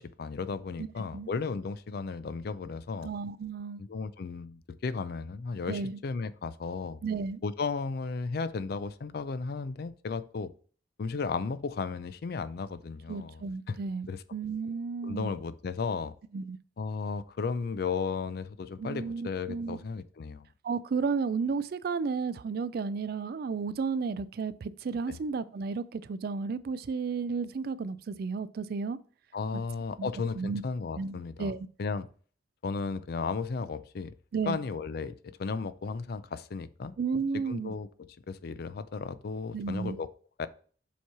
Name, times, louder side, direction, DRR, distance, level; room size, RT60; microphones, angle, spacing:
voice 1, 0.0-3.1 3.8-7.0 7.4-10.5 11.0-13.4 13.7-13.8 14.1-14.2 15.0-16.1 16.8-20.5 25.1-25.2 29.3-31.5 31.8-32.1 32.6-34.1 34.5-36.9 37.5-40.1 40.4-40.5, left 4 dB, 55° left, 0.4 m, -34 dB
voice 2, 3.0-3.8 5.7-6.0 7.0-7.4 13.1-15.3 16.3-16.6 18.8-19.8 20.6-29.0 30.0-30.6 31.0-31.6 34.3-34.6 37.0-37.7 39.5-40.0, right 5 dB, 55° right, 0.3 m, -33 dB
7.1 x 3.0 x 4.7 m
head